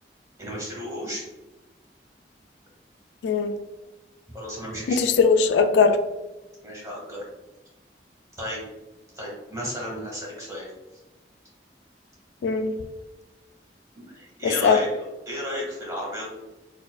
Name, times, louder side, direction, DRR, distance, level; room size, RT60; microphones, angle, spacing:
voice 1, 0.4-1.2 4.3-5.0 6.6-7.2 8.4-8.6 9.1-10.7 13.9-16.3, equal, 20° right, -4 dB, 1.2 m, -33 dB
voice 2, 3.2-3.5 4.9-6.0 12.4-12.7 14.4-14.8, left 5 dB, 85° left, 8 dB, 0.3 m, -20 dB
4.3 x 2.4 x 2.3 m, 1.1 s
head